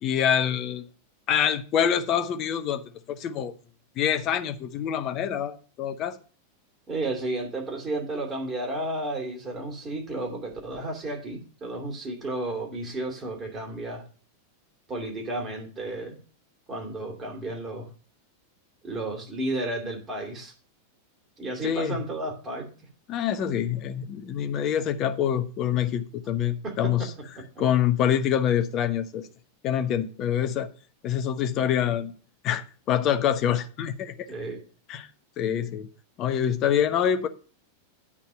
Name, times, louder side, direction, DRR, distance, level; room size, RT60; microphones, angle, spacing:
voice 1, 0.0-0.8 1.3-2.8 3.1-3.5 4.0-6.2 21.6-22.0 23.1-27.0 27.6-29.3 29.6-30.7 31.0-32.1 32.4-34.1 34.9-35.1 35.4-35.9 36.2-37.3, left 9 dB, 35° left, 1.0 m, -25 dB
voice 2, 6.9-14.0 14.9-16.2 16.7-17.9 18.8-20.5 21.4-22.7 26.6-26.9 34.3-34.6, right 2 dB, 20° right, 2.9 m, -32 dB
9.9 x 4.2 x 7.6 m
figure-of-eight pair, 90°, 0 cm